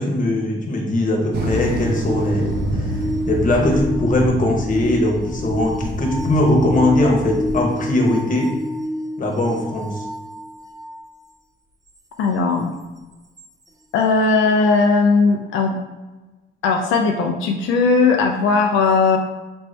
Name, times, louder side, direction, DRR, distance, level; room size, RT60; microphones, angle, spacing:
voice 1, 0.0-8.5 9.2-10.0, left 1 dB, 40° left, 0 dB, 1.0 m, -20 dB
sound 1, 1.3-11.1 13.4-13.5, left 1 dB, 20° right, 0.5 m, -29 dB
sound 2, 1.3-7.6, right 1 dB, 55° right, 0.7 m, -27 dB
voice 2, 12.2-12.7 13.9-15.8 16.6-19.2, left 4 dB, 90° left, 2 dB, 0.4 m, -17 dB
4.2 x 2.6 x 3.3 m, 1.2 s
cardioid pair, 90°, 20 cm